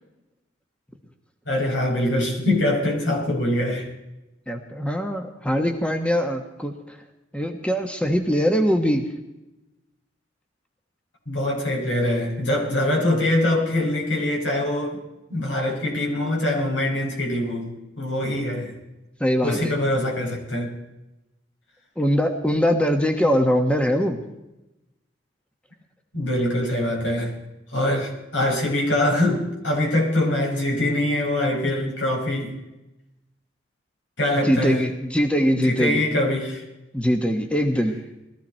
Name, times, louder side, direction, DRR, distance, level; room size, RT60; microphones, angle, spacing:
voice 1, 1.5-3.9 11.3-15.0 15.3-18.8 19.4-20.7 26.1-27.4 27.7-32.5 34.2-34.8 35.6-36.6, left 1 dB, 75° left, -1 dB, 5.6 m, -23 dB
voice 2, 4.5-7.0 7.3-9.0 19.2-19.7 22.0-24.2 34.4-36.0 36.9-37.9, equal, 5° left, 4 dB, 1.2 m, -22 dB
21.0 x 14.5 x 4.4 m, 0.95 s
head